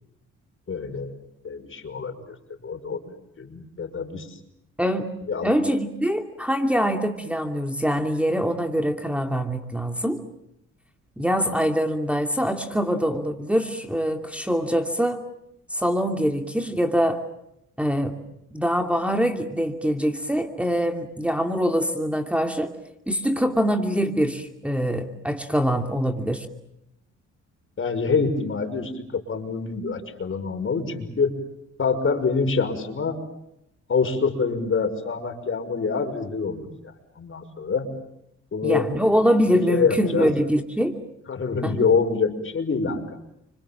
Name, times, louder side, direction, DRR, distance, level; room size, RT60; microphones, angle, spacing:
voice 1, 0.7-1.2 1.4-2.4 2.6-4.4 5.3-5.6 27.8-31.4 31.8-33.2 33.9-36.7 37.2-37.9 38.5-38.9 39.7-40.3 41.3-43.2, left 5 dB, 40° left, 7 dB, 5.8 m, -26 dB
voice 2, 5.4-10.2 11.2-15.2 15.7-17.2 17.8-18.2 18.5-22.7 23.1-26.5 38.6-41.0 41.6-41.9, equal, 5° right, 5 dB, 2.7 m, -24 dB
30.0 x 26.0 x 7.4 m, 0.80 s
cardioid pair, 90°, 30 cm